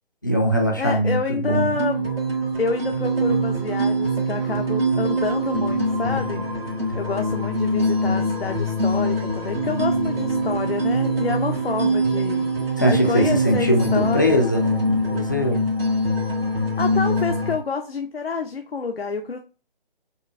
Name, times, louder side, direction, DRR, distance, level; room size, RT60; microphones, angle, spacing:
voice 1, 0.2-1.7 12.8-15.7, equal, 20° left, 0.4 m, -21 dB
voice 2, 0.8-2.2 2.6-6.5 6.9-12.5 12.8-14.5 16.5-19.4, left 5 dB, 85° left, 0.7 m, -28 dB
sound 1, 1.5-17.5, right 1 dB, 80° right, 1.2 m, -23 dB
5.1 x 2.4 x 3.3 m
figure-of-eight pair, 145°, 29 cm